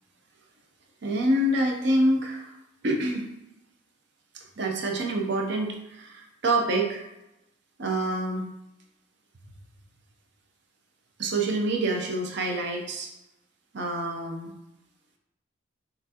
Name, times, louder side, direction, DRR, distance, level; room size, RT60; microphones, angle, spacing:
voice 1, 1.0-2.5 2.8-3.2 4.3-7.1 7.8-8.4 11.2-13.1 13.7-14.5, right 1 dB, 60° right, 1 dB, 0.7 m, -26 dB
5.8 x 2.5 x 2.8 m, 0.90 s
head